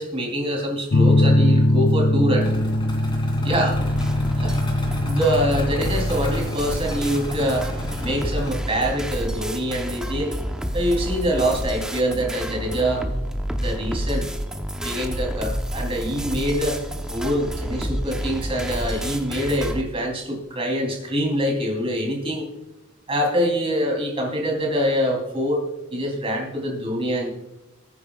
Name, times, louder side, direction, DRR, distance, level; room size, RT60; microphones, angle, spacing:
voice 1, 0.0-2.5 3.4-3.8 4.3-4.6 5.0-7.7 8.0-10.3 10.7-13.1 13.6-14.3 14.8-16.8 17.1-22.5 23.1-25.6 25.9-27.3, equal, 30° right, 1 dB, 3.3 m, -24 dB
sound 1, 0.9-8.6, left 1 dB, 45° left, 0.6 m, -22 dB
sound 2, 2.4-8.5, left 1 dB, 25° left, 2.9 m, -34 dB
sound 3, 3.7-19.8, equal, 5° right, 0.8 m, -29 dB
21.0 x 9.6 x 2.4 m, 1.0 s
head